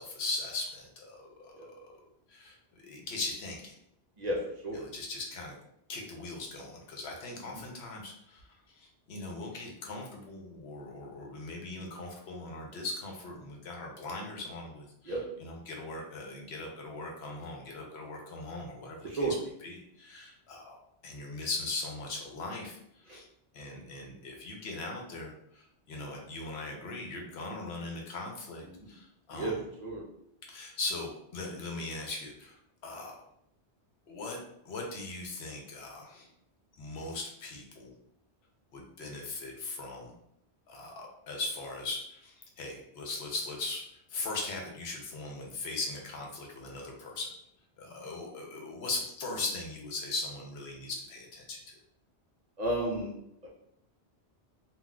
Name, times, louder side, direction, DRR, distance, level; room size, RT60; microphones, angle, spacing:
voice 1, 0.0-2.0 2.3-2.6 2.8-3.8 4.7-5.6 5.9-19.4 19.6-20.8 21.0-23.3 23.5-29.6 30.5-32.6 32.8-33.2 34.1-34.4 34.6-36.3 36.8-37.9 38.7-40.1 40.7-43.8 44.1-47.3 47.8-51.7, left 3 dB, 75° left, 1 dB, 0.9 m, -39 dB
voice 2, 19.0-19.3 23.1-23.2 29.3-29.5 29.8-30.0 52.6-53.1, right 2 dB, 50° right, -3 dB, 0.6 m, -32 dB
3.7 x 2.4 x 2.2 m, 0.75 s
omnidirectional pair, 1.1 m